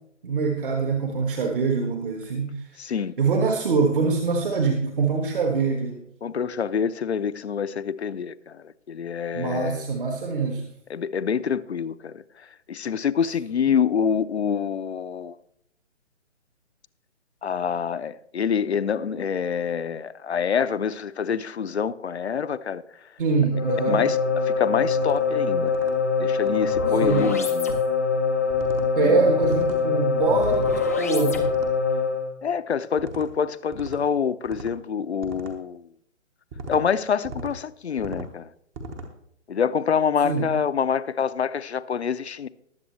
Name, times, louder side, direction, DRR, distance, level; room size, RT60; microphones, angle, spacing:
voice 1, 0.2-6.0 9.3-10.7 23.2-24.1 26.9-27.4 29.0-31.5 40.2-40.5, right 4 dB, 45° right, 1.4 m, -24 dB
voice 2, 2.8-3.1 6.2-8.5 8.9-9.8 10.9-12.2 12.7-15.3 17.4-22.8 23.9-24.2 24.5-25.7 26.2-27.7 29.0-29.3 32.4-35.8 36.7-38.5 39.5-42.5, left 7 dB, 60° left, 0.7 m, -26 dB
sound 1, 23.5-32.3, left 5 dB, 15° left, 0.4 m, -23 dB
sound 2, 24.9-25.2 25.7-25.9 26.4-26.7 27.2-27.5 28.5-28.9 29.4-29.8 30.3-30.8 31.3-31.7 33.0-33.3 33.7-34.0 34.4-34.8 35.2-35.6 36.5-36.8 37.2-37.6 38.0-38.3 38.7-39.1, right 2 dB, 15° right, 0.7 m, -39 dB
20.0 x 7.5 x 3.2 m
figure-of-eight pair, 135°, 37 cm